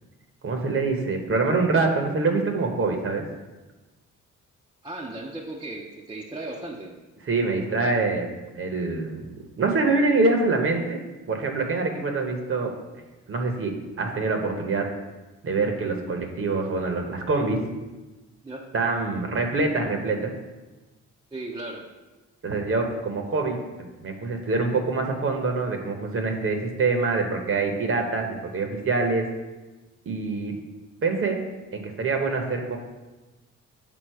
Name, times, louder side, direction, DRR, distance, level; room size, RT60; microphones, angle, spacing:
voice 1, 0.4-3.2 7.2-9.3 9.6-11.0 11.3-12.7 13.3-14.9 15.4-17.6 18.7-20.3 22.4-29.2 30.1-30.6 31.0-31.4 31.7-32.8, right 3 dB, 45° right, 3 dB, 0.9 m, -25 dB
voice 2, 4.8-7.0 18.4-18.7 21.3-21.9, right 2 dB, 15° right, -2 dB, 0.6 m, -36 dB
6.3 x 3.7 x 4.6 m, 1.1 s
cardioid pair, 90°, 30 cm